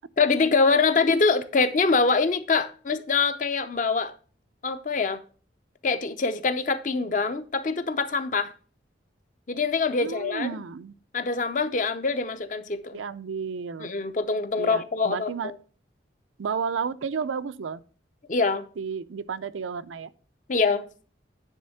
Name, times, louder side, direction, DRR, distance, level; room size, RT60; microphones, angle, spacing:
voice 1, 0.2-4.1 4.6-5.2 5.8-8.5 9.5-10.5 11.1-13.0 13.8-15.5 18.3-18.6 20.5-20.8, left 4 dB, 40° left, 0.6 m, -24 dB
voice 2, 10.0-10.9 12.9-13.9 14.6-15.5 16.4-17.8 18.8-20.1, right 6 dB, 90° right, 0.5 m, -32 dB
9.9 x 3.5 x 5.5 m
head